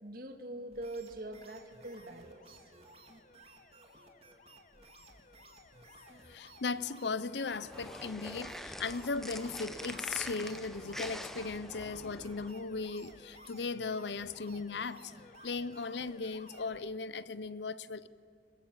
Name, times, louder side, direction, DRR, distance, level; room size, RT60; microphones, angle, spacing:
voice 1, 0.0-2.7, right 1 dB, 55° right, 2.1 m, -43 dB
sound 1, 0.7-16.8, right 3 dB, 35° right, 2.0 m, -59 dB
Alarm, 1.2-16.9, left 3 dB, 45° left, 1.0 m, -57 dB
voice 2, 6.3-18.1, left 4 dB, 85° left, 0.7 m, -37 dB
sound 2, 7.5-12.5, equal, ahead, 0.9 m, -44 dB
26.0 x 22.5 x 7.6 m
head